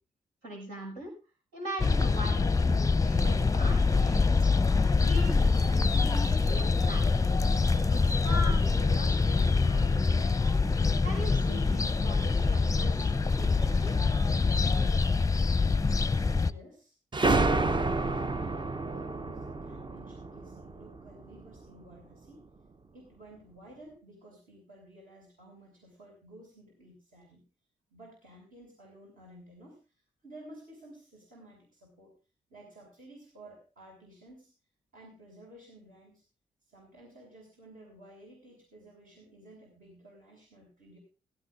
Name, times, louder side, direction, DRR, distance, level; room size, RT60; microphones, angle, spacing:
voice 1, 0.4-1.1 1.5-4.5 5.0-7.1 7.7-10.3 11.0-14.0, right 1 dB, 75° right, -1 dB, 6.3 m, -41 dB
sound 1, 1.8-16.5, left 4 dB, 20° left, 0.7 m, -25 dB
voice 2, 16.3-17.0 18.0-22.5 22.9-27.4 27.9-29.8 30.2-32.1 32.5-34.5 34.9-36.2 36.7-41.0, right 1 dB, 50° right, -1 dB, 7.0 m, -53 dB
sound 2, 17.1-21.6, right 3 dB, 25° right, 0.9 m, -29 dB
17.0 x 17.0 x 2.6 m, 0.31 s
hypercardioid pair, 40°, 17 cm